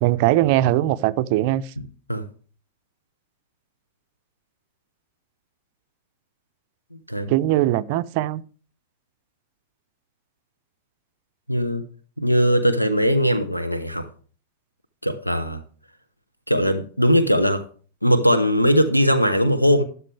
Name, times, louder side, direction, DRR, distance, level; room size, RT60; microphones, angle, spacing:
voice 1, 0.0-1.6 7.3-8.4, right 15 dB, 45° right, 0.5 m, -20 dB
voice 2, 11.5-11.8 12.2-14.1 15.0-15.6 16.5-17.6 18.0-19.8, equal, 90° left, 0.8 m, -19 dB
12.5 x 11.0 x 3.3 m
figure-of-eight pair, 90°, 0 cm